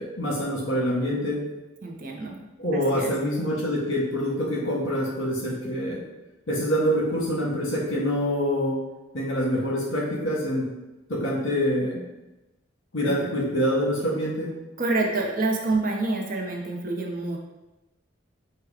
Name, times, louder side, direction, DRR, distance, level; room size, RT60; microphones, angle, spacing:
voice 1, 0.0-1.4 2.6-6.0 6.5-8.8 9.1-10.6 11.1-12.0 12.9-14.5, equal, 80° left, -3 dB, 1.5 m, -25 dB
voice 2, 1.8-2.4 2.7-3.1 13.0-13.2 14.8-17.4, right 2 dB, 45° right, 1 dB, 0.6 m, -27 dB
4.8 x 2.2 x 4.8 m, 1.0 s
head